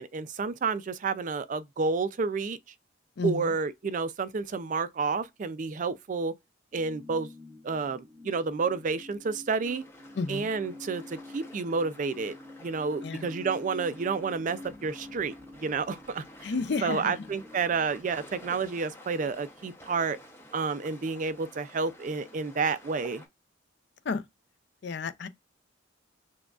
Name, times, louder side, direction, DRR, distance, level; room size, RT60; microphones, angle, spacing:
voice 1, 0.0-2.6 3.2-6.3 6.7-7.3 7.6-9.8 10.3-12.4 12.6-16.5 16.8-20.2 20.5-23.2, right 4 dB, 40° right, 0.3 m, -30 dB
voice 2, 3.2-3.5 10.1-10.5 13.0-13.3 16.4-17.3 24.0-24.2 24.8-25.3, left 4 dB, 55° left, 0.4 m, -31 dB
sound 1, 6.7-18.1, left 2 dB, 15° right, 1.0 m, -48 dB
sound 2, 9.6-23.3, left 1 dB, 10° left, 0.8 m, -51 dB
6.1 x 2.3 x 2.3 m
head